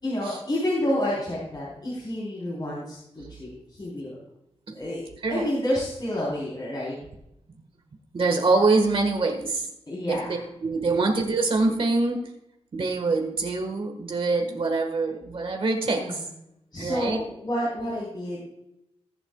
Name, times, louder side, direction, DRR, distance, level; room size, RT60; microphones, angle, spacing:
voice 1, 0.0-4.2 4.7-5.0 5.3-7.0 9.9-10.3 15.9-16.2 16.7-18.4, left 1 dB, 40° left, -6 dB, 3.7 m, -29 dB
voice 2, 8.1-9.7 10.1-12.2 12.7-16.3 16.8-17.2, right 3 dB, 55° right, 3 dB, 1.5 m, -25 dB
20.5 x 8.0 x 2.3 m, 0.82 s
wide cardioid pair, 150°, 11 cm